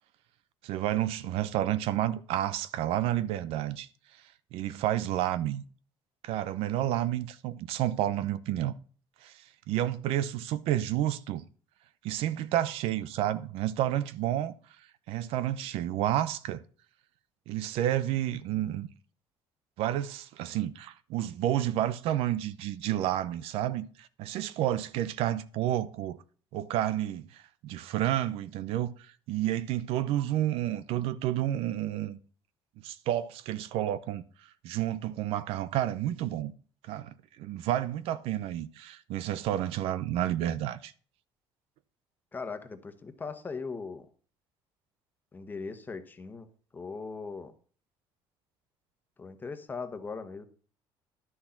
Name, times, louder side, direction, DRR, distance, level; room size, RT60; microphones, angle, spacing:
voice 1, 0.6-3.9 4.5-5.6 6.2-8.7 9.2-11.4 12.0-14.5 15.1-16.6 17.5-18.9 19.8-26.2 26.5-32.2 32.8-36.5 36.9-40.9, right 12 dB, 75° right, 0.7 m, -30 dB
voice 2, 42.3-44.1 45.3-46.5 46.7-47.5 49.2-50.4, left 4 dB, 20° left, 1.2 m, -39 dB
11.0 x 6.4 x 5.8 m
cardioid pair, 135°, 10 cm